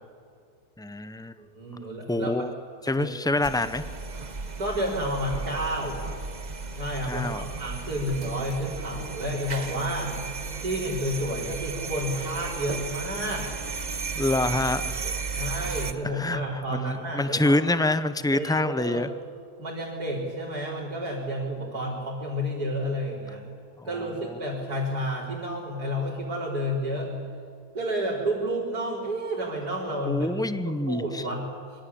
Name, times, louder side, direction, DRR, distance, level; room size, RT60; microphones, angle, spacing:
voice 1, 0.8-1.3 2.1-2.5 2.8-3.8 7.1-7.5 14.2-14.9 15.7-15.8 16.1-19.1 23.8-24.4 30.1-31.3, left 2 dB, 5° left, 12 dB, 0.4 m, -26 dB
voice 2, 1.4-2.5 2.9-3.1 4.6-6.0 6.8-10.2 10.6-13.5 15.4-17.6 18.3-19.1 19.6-23.4 23.9-27.1 27.7-30.3 30.6-31.5, equal, 75° right, -6 dB, 5.1 m, -30 dB
sound 1, 3.4-15.9, right 4 dB, 30° right, 1.3 m, -34 dB
26.0 x 24.0 x 8.6 m, 2.3 s
omnidirectional pair, 1.7 m